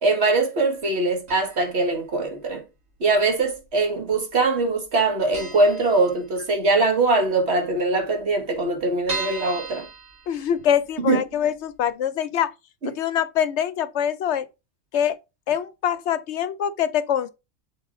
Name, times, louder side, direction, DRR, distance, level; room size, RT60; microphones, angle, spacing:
voice 1, 0.0-2.6 3.0-9.9 11.0-11.2, right 3 dB, 55° right, 1.7 m, -22 dB
sound 1, 1.3-1.8 2.1-2.2 3.1-3.8 4.1-4.2 4.5-4.6 5.0-5.1 5.3-6.7 7.0-7.1 7.4-7.5 7.7-7.8 8.3-10.9 11.4-11.5 11.8-11.9, right 4 dB, 85° right, 2.6 m, -36 dB
voice 2, 10.3-12.5 12.8-14.5 14.9-15.1 15.5-17.3, left 9 dB, 65° left, 0.9 m, -24 dB
6.6 x 4.3 x 3.7 m
omnidirectional pair, 1.3 m